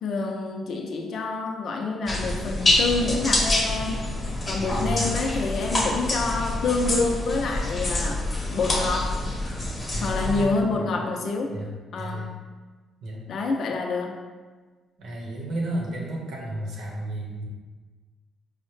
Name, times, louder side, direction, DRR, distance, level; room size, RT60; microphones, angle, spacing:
voice 1, 0.0-9.2 10.0-11.5 11.9-12.4 13.3-14.2, left 3 dB, 65° left, 2 dB, 0.5 m, -27 dB
sound 1, 2.1-10.4, left 1 dB, 30° left, 0.8 m, -26 dB
voice 2, 4.4-5.1 9.9-11.0 11.5-12.3 13.0-13.2 15.0-17.5, right 1 dB, 75° right, -2 dB, 0.9 m, -33 dB
4.6 x 2.1 x 3.1 m, 1.4 s
cardioid pair, 90°, 0 cm